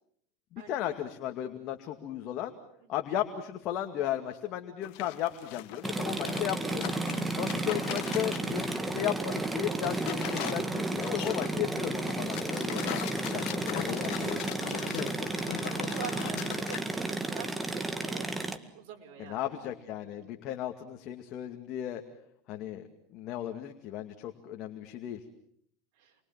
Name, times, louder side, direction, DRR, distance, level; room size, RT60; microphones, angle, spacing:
voice 1, 0.5-2.5 2.9-6.9 7.3-12.9 13.3-14.5 14.8-15.3 19.2-22.0 22.5-22.8 23.1-25.2, left 11 dB, 50° left, 4 dB, 2.3 m, -35 dB
sound 1, 4.8-8.9 9.2-16.8, left 16 dB, 70° left, 1.6 m, -40 dB
sound 2, 5.8-18.6, right 2 dB, 10° right, 1.9 m, -33 dB
voice 2, 12.2-12.6 12.9-13.3 15.0-18.3 18.7-19.4 20.1-20.3 26.0-26.2, right 8 dB, 65° right, 3 dB, 5.5 m, -46 dB
29.0 x 23.0 x 7.5 m, 0.68 s
supercardioid pair, 135°, 0 cm